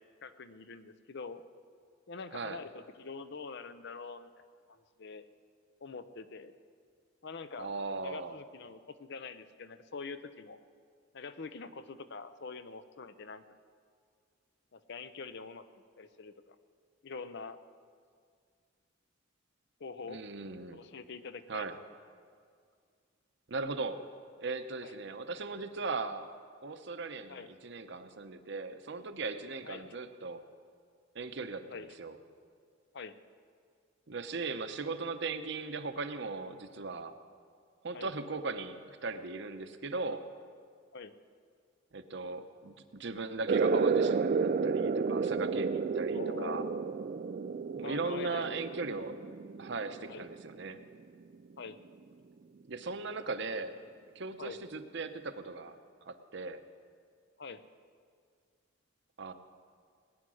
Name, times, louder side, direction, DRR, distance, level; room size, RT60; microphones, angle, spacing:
voice 1, 0.2-1.4 2.1-5.3 5.8-6.5 7.2-7.7 8.0-10.6 11.1-13.4 14.7-15.6 16.0-16.6 17.0-17.6 19.8-20.2 20.7-21.7 24.8-25.0 27.3-27.5 29.7-30.0 31.7-32.0 32.9-33.1 37.9-38.1 40.9-41.1 46.0-46.8 47.8-48.6 50.1-50.2 51.6-51.8 54.4-54.6 57.4-57.6, left 4 dB, 60° left, 12 dB, 0.6 m, -44 dB
voice 2, 7.6-8.4 20.1-20.8 21.5-21.7 23.5-24.0 24.4-26.3 26.6-30.4 31.1-32.2 34.1-37.1 37.8-40.2 41.9-46.6 47.8-49.2 49.6-50.8 52.7-53.7 54.1-55.8 56.1-56.6 59.2-59.3, right 3 dB, 60° right, 9 dB, 0.8 m, -38 dB
sound 1, 43.5-50.6, right 5 dB, 45° right, 0.3 m, -31 dB
19.0 x 9.7 x 6.3 m, 2.1 s
head